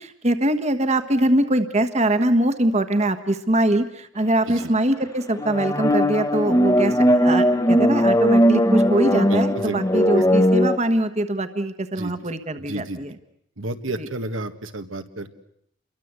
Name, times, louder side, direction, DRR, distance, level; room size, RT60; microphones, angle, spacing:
voice 1, 0.0-13.1 14.0-14.1, right 1 dB, 35° right, 9 dB, 1.4 m, -23 dB
sound 1, 5.4-10.8, equal, 20° left, 1.1 m, -18 dB
voice 2, 9.3-10.0 12.0-12.1 12.7-13.0 13.6-15.3, right 2 dB, 85° right, 7 dB, 1.8 m, -31 dB
29.0 x 23.0 x 8.2 m, 0.73 s
head